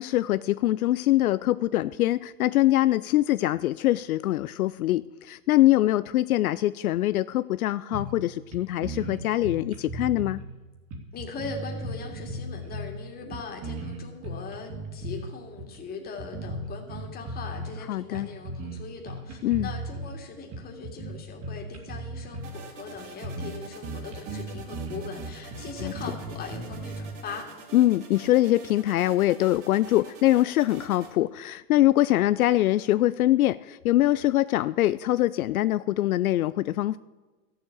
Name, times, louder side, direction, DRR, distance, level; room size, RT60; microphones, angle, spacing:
voice 1, 0.0-10.4 17.9-18.3 19.4-19.7 25.8-25.9 27.7-37.0, left 15 dB, 75° left, 15 dB, 0.5 m, -23 dB
sound 1, 7.9-8.3 8.5-8.6 8.8-10.5 10.9-13.0 13.3-15.2 15.6-15.8 16.2-17.8 18.1-18.8 19.1-20.1 20.5-22.6 22.9-23.0 23.2-23.6 23.8-27.1, right 2 dB, 35° right, 2.7 m, -36 dB
voice 2, 11.1-27.5, left 5 dB, 20° left, 2 dB, 2.4 m, -40 dB
sound 2, 22.4-31.1, right 4 dB, 55° right, 3.0 m, -46 dB
13.5 x 7.6 x 8.4 m, 1.2 s
hypercardioid pair, 135°, 43 cm